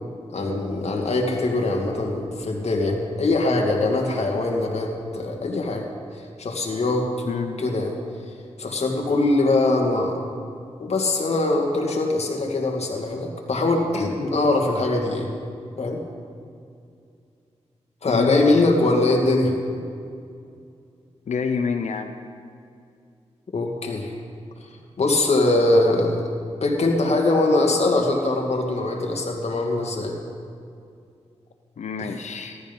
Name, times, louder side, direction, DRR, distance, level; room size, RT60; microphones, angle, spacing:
voice 1, 0.3-5.9 6.4-7.3 7.6-7.9 8.6-10.2 10.8-15.3 15.8-16.0 18.0-19.5 23.5-24.1 25.0-26.3 26.6-30.1, left 2 dB, 65° left, 0 dB, 2.1 m, -22 dB
voice 2, 7.2-7.6 18.0-18.6 21.3-22.1 31.8-32.6, left 5 dB, 80° left, 6 dB, 0.7 m, -27 dB
14.5 x 12.0 x 5.4 m, 2.4 s
cardioid pair, 55°, 12 cm